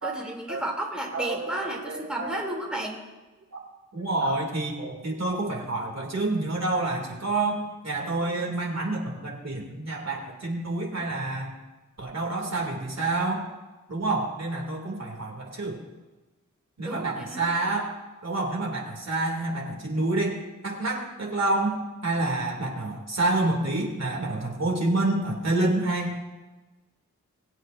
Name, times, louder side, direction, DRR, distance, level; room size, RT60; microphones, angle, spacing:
voice 1, 0.0-3.0 16.8-17.5, right 1 dB, 5° right, -2 dB, 2.9 m, -33 dB
voice 2, 1.1-2.5 3.5-3.6 3.9-7.6 7.8-11.5 12.0-13.4 13.9-15.8 16.8-17.9 18.2-26.3, right 2 dB, 55° right, 0 dB, 2.7 m, -28 dB
23.0 x 8.1 x 2.6 m, 1.1 s
cardioid pair, 45°, 32 cm